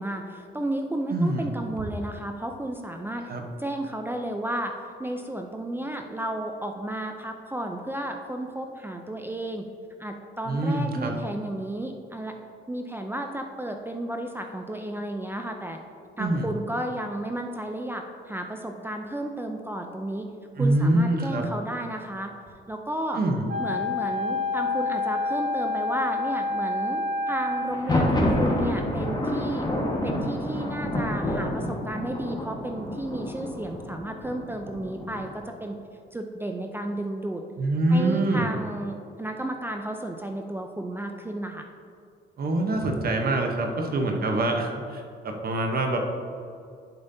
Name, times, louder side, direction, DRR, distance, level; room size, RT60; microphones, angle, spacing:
voice 1, 0.0-3.3 3.6-9.7 10.0-12.4 12.7-15.8 16.2-20.3 20.6-22.3 22.7-23.2 23.6-29.7 30.0-35.8 36.1-37.4 37.9-41.7, right 1 dB, 10° right, 4 dB, 0.5 m, -33 dB
voice 2, 1.1-1.5 3.3-3.4 10.5-11.1 16.2-16.5 20.6-21.4 23.2-23.5 37.6-38.5 42.4-46.0, right 2 dB, 50° right, 3 dB, 1.0 m, -25 dB
Wind instrument woodwind instrument, 23.5-27.9, left 3 dB, 65° right, 1.7 m, -28 dB
Thunder, 27.6-35.4, left 1 dB, 20° left, 1.4 m, -28 dB
10.5 x 5.3 x 2.7 m, 2.4 s
cardioid pair, 90°, 20 cm